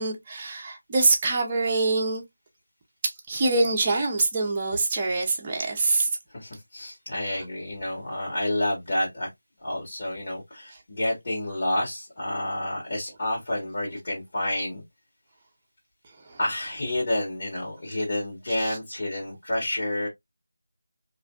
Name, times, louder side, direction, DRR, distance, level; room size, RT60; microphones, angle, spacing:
voice 1, 0.0-2.2 3.0-6.1 7.3-7.4 16.3-16.4 18.6-18.8, right 3 dB, 20° right, 0.7 m, -25 dB
voice 2, 6.3-9.3 9.6-14.8 16.4-20.1, left 1 dB, 45° left, 1.5 m, -29 dB
3.2 x 2.5 x 2.3 m
figure-of-eight pair, 170°, 0 cm